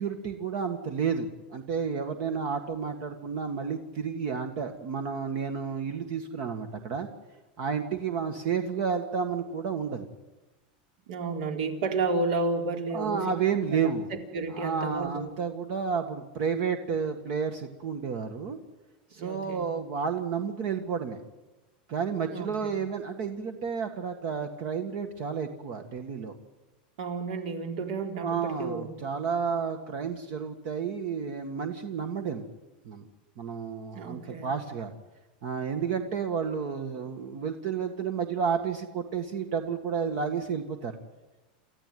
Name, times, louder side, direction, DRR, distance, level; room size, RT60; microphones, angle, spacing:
voice 1, 0.0-7.1 7.6-10.1 12.9-14.1 14.5-18.6 19.1-21.2 21.9-26.4 28.2-32.5 32.9-33.1 33.4-34.9 35.4-40.9, right 6 dB, 45° right, 7 dB, 1.8 m, -31 dB
voice 2, 11.1-13.3 13.8-13.9 14.3-15.3 19.1-19.7 22.3-22.5 27.0-28.9 33.9-34.5, right 3 dB, 60° right, 4 dB, 4.2 m, -31 dB
29.0 x 14.5 x 9.4 m, 1.1 s
supercardioid pair, 165°, 5 cm